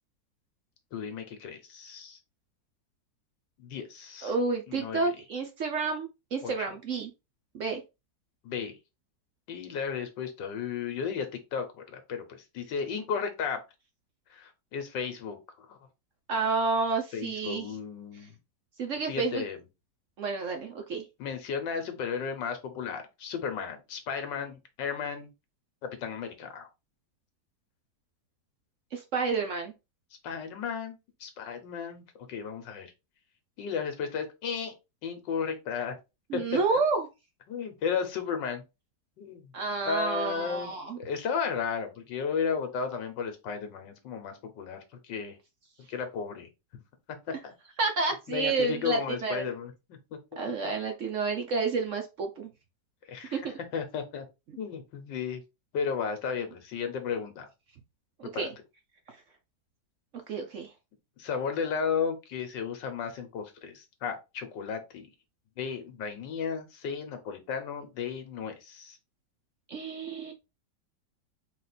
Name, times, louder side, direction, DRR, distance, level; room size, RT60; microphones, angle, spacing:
voice 1, 0.9-2.2 3.6-4.3 4.7-5.1 6.4-6.7 8.4-8.8 9.5-13.6 14.3-15.4 15.7-15.8 17.1-18.4 19.0-19.6 21.2-25.3 25.8-26.7 30.2-32.9 33.6-34.7 35.0-36.0 36.3-36.6 37.5-38.6 39.2-39.5 39.8-40.7 41.0-45.4 45.9-46.5 47.1-47.5 48.3-50.2 53.1-53.4 53.7-54.3 54.6-55.4 55.7-57.5 58.2-58.5 61.2-65.1 65.6-69.0, left 6 dB, 90° left, 7 dB, 1.6 m, -34 dB
voice 2, 4.2-7.1 7.5-7.8 16.3-17.7 18.1-18.3 18.8-19.4 20.2-21.1 28.9-29.7 36.3-37.1 39.5-41.0 47.8-49.5 50.4-52.5 53.3-53.6 58.2-58.5 59.1-59.2 60.3-60.7 69.7-70.3, right 4 dB, 60° right, 4 dB, 0.9 m, -30 dB
4.3 x 2.5 x 4.0 m, 0.26 s
omnidirectional pair, 1.9 m